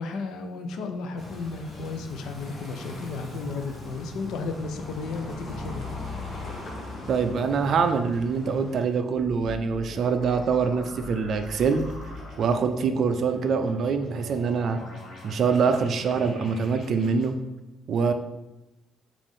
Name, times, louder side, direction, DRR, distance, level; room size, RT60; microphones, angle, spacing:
voice 1, 0.0-5.9, left 4 dB, 70° left, 6 dB, 0.5 m, -34 dB
sound 1, 1.2-8.8, left 2 dB, 30° left, 0.9 m, -39 dB
voice 2, 7.1-11.8 12.4-14.8 15.2-17.3 17.9-18.1, right 5 dB, 45° right, 8 dB, 0.3 m, -24 dB
sound 2, 9.2-17.3, left 1 dB, 50° left, 1.3 m, -42 dB
5.2 x 2.5 x 3.6 m, 0.99 s
cardioid pair, 150°, 0 cm